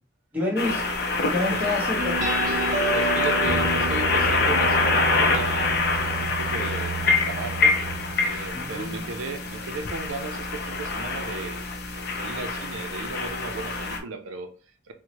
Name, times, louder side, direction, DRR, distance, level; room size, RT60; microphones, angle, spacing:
voice 1, 0.3-0.9 1.3-2.2 8.5-9.0, left 2 dB, 10° right, 1.0 m, -28 dB
sound 1, 0.6-14.0, left 3 dB, 50° left, 0.5 m, -25 dB
sound 2, 2.0-9.1, right 3 dB, 40° right, 0.6 m, -30 dB
voice 2, 2.9-5.9 6.2-7.8 8.2-14.9, right 4 dB, 85° right, 0.4 m, -36 dB
4.4 x 2.0 x 2.9 m
head